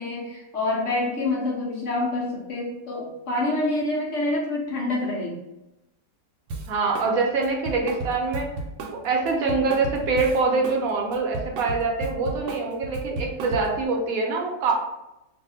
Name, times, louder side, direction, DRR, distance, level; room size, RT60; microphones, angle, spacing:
voice 1, 0.0-5.4, left 2 dB, 60° left, -3 dB, 0.9 m, -27 dB
Drum kit, 6.5-7.1 7.4-10.8 11.1-13.9, right 2 dB, 90° right, 1.2 m, -33 dB
voice 2, 6.7-8.5 8.9-14.7, right 4 dB, 70° right, 1 dB, 1.0 m, -24 dB
2.6 x 2.4 x 4.1 m, 0.93 s
omnidirectional pair, 1.7 m